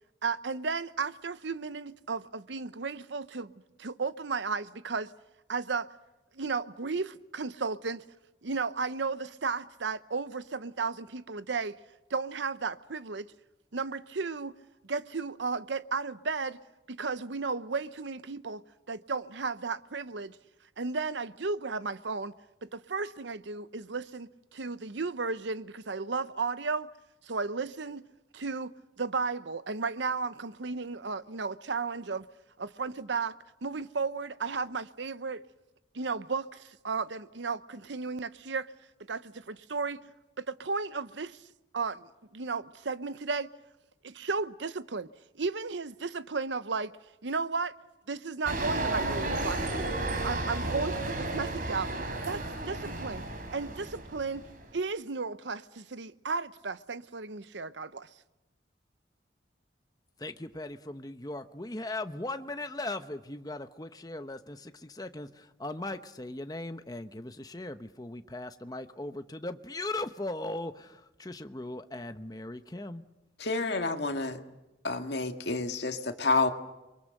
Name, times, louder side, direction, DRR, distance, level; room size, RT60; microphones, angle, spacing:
voice 1, 0.2-3.5 3.8-5.1 5.5-5.9 6.3-8.0 8.4-11.8 12.1-13.3 13.7-14.5 14.8-16.6 16.9-18.6 18.9-20.4 20.8-22.3 22.6-26.9 27.2-28.0 28.3-32.2 32.6-33.3 33.6-35.4 35.9-38.7 39.1-40.0 40.4-41.4 41.7-43.5 44.0-45.1 45.4-46.9 47.2-47.7 48.1-49.9 50.2-51.9 52.3-53.2 53.5-58.1, right 4 dB, 75° right, 0.8 m, -34 dB
sound 1, 48.5-54.8, right 2 dB, 50° right, 3.4 m, -33 dB
voice 2, 60.2-73.0, left 2 dB, 20° left, 0.9 m, -38 dB
voice 3, 73.4-74.4 74.8-76.5, left 3 dB, 65° left, 1.9 m, -29 dB
30.0 x 23.0 x 6.6 m
head